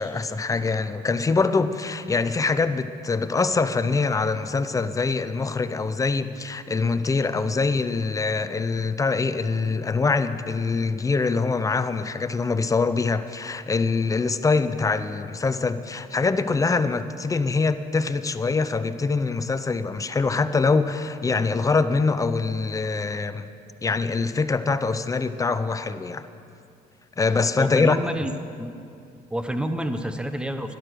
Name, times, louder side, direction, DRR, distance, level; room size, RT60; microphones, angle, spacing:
voice 1, 0.0-23.5 23.8-26.3 27.2-28.0, left 4 dB, 20° left, 12 dB, 0.6 m, -24 dB
voice 2, 27.6-28.8 29.3-30.8, equal, 5° right, 8 dB, 0.9 m, -28 dB
12.0 x 11.5 x 6.3 m, 2.5 s
cardioid pair, 110°, 17 cm